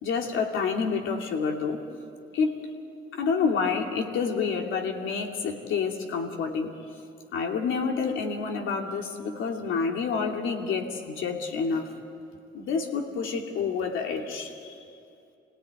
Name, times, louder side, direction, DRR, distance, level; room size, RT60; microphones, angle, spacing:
voice 1, 0.0-1.8 2.3-2.5 3.1-6.7 7.3-11.9 12.5-14.7, left 5 dB, 80° left, 2 dB, 2.7 m, -28 dB
26.5 x 17.5 x 9.5 m, 2.5 s
cardioid pair, 90°, 20 cm